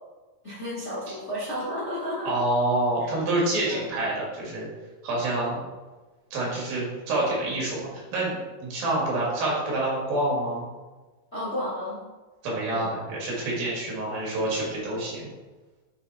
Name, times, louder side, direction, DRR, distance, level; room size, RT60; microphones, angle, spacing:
voice 1, 0.4-2.3 3.0-3.3 3.7-3.8 11.3-12.0 12.7-12.9, equal, 60° left, -8 dB, 0.7 m, -32 dB
voice 2, 2.3-4.7 5.0-5.6 6.3-8.4 8.6-10.7 12.4-15.2, right 1 dB, 90° right, -5 dB, 3.7 m, -27 dB
7.9 x 3.2 x 4.0 m, 1.2 s
omnidirectional pair, 3.9 m